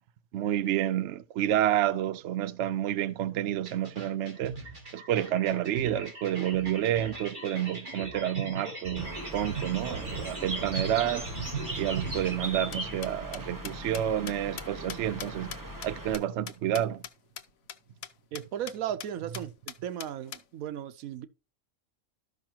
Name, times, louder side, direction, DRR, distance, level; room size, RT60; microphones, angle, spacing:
voice 1, 0.3-4.6 4.9-11.3 11.7-15.5 15.8-17.0 19.2-19.5, right 11 dB, 65° right, 0.8 m, -29 dB
sound 1, 3.5-12.3, right 3 dB, 35° right, 2.8 m, -39 dB
Bird, 9.0-16.2, right 1 dB, 15° right, 1.1 m, -39 dB
sound 2, 12.4-17.1 17.4-17.5 17.7-17.8 18.0-18.1 18.3-18.7 19.0-19.1 19.3-20.4, left 9 dB, 85° left, 1.1 m, -41 dB
voice 2, 18.3-19.5 19.8-21.3, right 10 dB, 85° right, 1.1 m, -35 dB
13.0 x 5.7 x 2.8 m
omnidirectional pair, 1.4 m